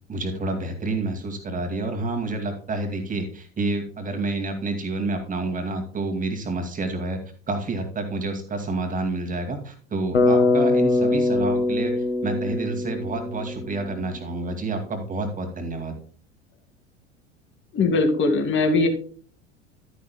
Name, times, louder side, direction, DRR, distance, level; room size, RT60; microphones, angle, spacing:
voice 1, 0.1-7.2 7.5-16.0, right 2 dB, 25° right, 6 dB, 2.3 m, -29 dB
Bass guitar, 10.1-14.3, left 2 dB, 80° left, 1.4 m, -23 dB
voice 2, 17.7-18.9, left 3 dB, 35° left, 6 dB, 2.0 m, -20 dB
12.0 x 10.0 x 2.2 m, 0.42 s
figure-of-eight pair, 75°, 34 cm